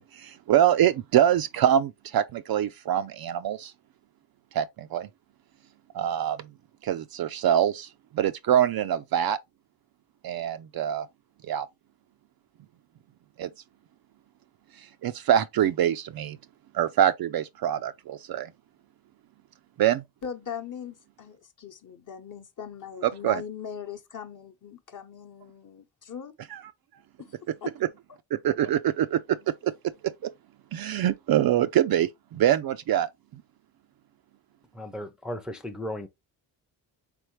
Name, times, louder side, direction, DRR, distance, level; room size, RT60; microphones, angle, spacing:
voice 1, 0.1-3.7 4.5-5.1 5.9-6.5 6.8-7.9 8.1-9.4 10.2-11.1 11.5-11.7 13.4-13.5 15.0-16.4 16.7-18.5 19.8-20.0 23.2-23.4 28.3-29.7 30.2-30.3 30.7-33.1, right 10 dB, 50° right, 0.5 m, -24 dB
voice 2, 20.2-26.3 27.2-27.7, left 8 dB, 40° left, 0.9 m, -40 dB
voice 3, 34.7-36.1, left 1 dB, ahead, 0.5 m, -35 dB
3.6 x 3.5 x 3.0 m
supercardioid pair, 65°, 48 cm